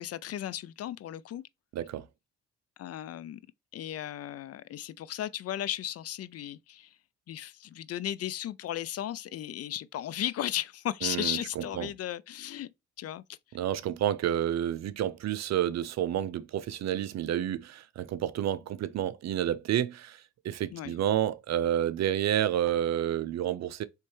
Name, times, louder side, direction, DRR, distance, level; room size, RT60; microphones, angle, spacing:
voice 1, 0.0-1.4 2.8-3.4 3.7-7.0 7.3-12.7 13.0-13.4 20.7-20.9, left 11 dB, 55° left, 0.5 m, -35 dB
voice 2, 1.7-2.0 11.0-11.9 13.5-23.8, right 11 dB, 60° right, 0.6 m, -30 dB
4.2 x 3.2 x 3.2 m
cardioid pair, 90°, 30 cm